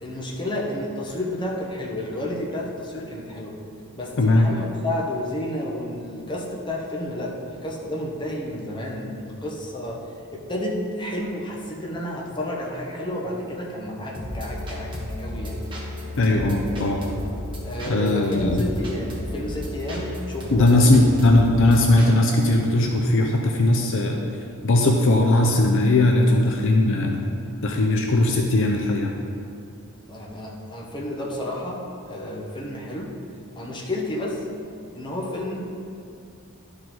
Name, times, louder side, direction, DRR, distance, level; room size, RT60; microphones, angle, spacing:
voice 1, 0.0-3.6 3.9-10.0 10.3-15.6 17.6-20.8 30.1-33.1 33.5-34.4 34.9-35.6, left 1 dB, 20° left, -3 dB, 1.1 m, -31 dB
voice 2, 4.2-4.5 16.2-17.0 17.9-18.6 20.5-24.2 24.6-27.3 27.6-29.1, left 2 dB, 60° left, 1 dB, 0.6 m, -19 dB
sound 1, 14.1-22.5, left 1 dB, 20° right, 1.4 m, -33 dB
11.5 x 4.9 x 3.8 m, 2.5 s
head